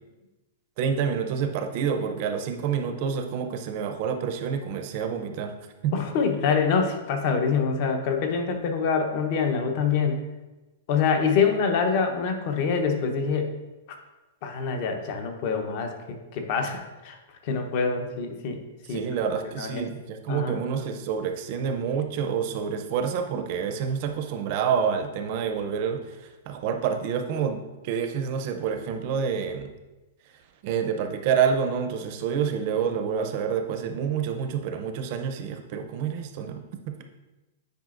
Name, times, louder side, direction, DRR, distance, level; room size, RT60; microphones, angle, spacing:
voice 1, 0.8-5.5 5.8-5.9 18.9-29.7 30.6-36.9, right 7 dB, 40° right, 6 dB, 0.6 m, -28 dB
voice 2, 5.9-10.2 10.9-13.5 14.4-17.2 17.4-18.6 18.9-19.0 19.4-19.8 20.3-20.6, left 5 dB, 40° left, 5 dB, 0.8 m, -25 dB
9.2 x 4.9 x 2.5 m, 1.1 s
supercardioid pair, 165°, 0 cm